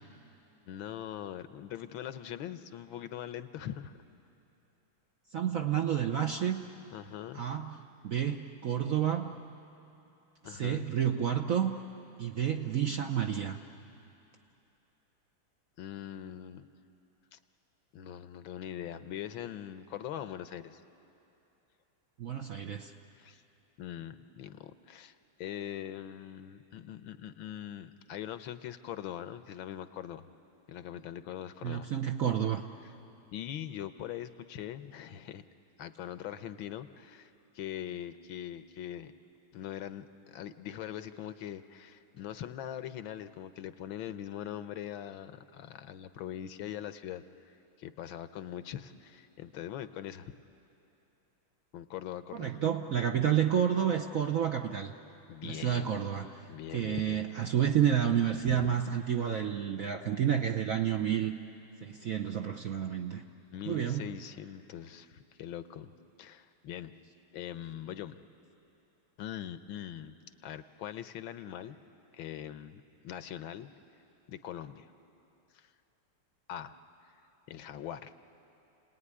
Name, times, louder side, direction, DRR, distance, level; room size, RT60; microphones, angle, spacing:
voice 1, 0.7-3.9 6.9-7.5 10.4-10.9 15.8-16.7 17.3-17.4 17.9-20.8 23.2-23.4 23.8-30.2 30.7-31.9 32.8-32.9 33.3-35.4 35.8-39.1 39.5-50.3 51.7-52.6 55.3-56.0 56.5-57.2 58.5-58.8 63.5-66.9 67.3-68.2 69.2-70.1 70.4-71.8 72.1-73.7 74.3-74.9 75.5-75.7 76.5-76.7 77.5-78.1, left 10 dB, 75° left, 11 dB, 1.5 m, -42 dB
voice 2, 5.3-6.6 7.3-7.8 8.0-9.3 10.5-11.8 12.2-13.6 22.2-22.9 31.6-32.6 52.3-54.9 55.4-56.3 56.7-61.3 61.8-63.2 63.7-64.0, right 9 dB, 60° right, 5 dB, 0.9 m, -30 dB
29.5 x 19.0 x 9.7 m, 2.9 s
omnidirectional pair, 2.3 m